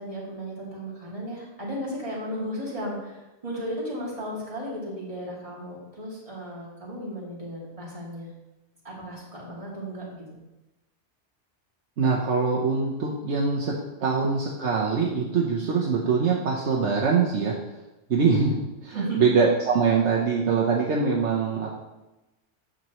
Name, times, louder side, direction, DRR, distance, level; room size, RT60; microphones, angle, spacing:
voice 1, 0.0-8.3 8.8-10.4 18.9-19.3, equal, 30° right, -6 dB, 2.5 m, -35 dB
voice 2, 12.0-13.7 14.0-17.5 18.1-21.7, right 5 dB, 75° right, -3 dB, 1.2 m, -23 dB
9.2 x 7.5 x 3.0 m, 1.0 s
omnidirectional pair, 1.2 m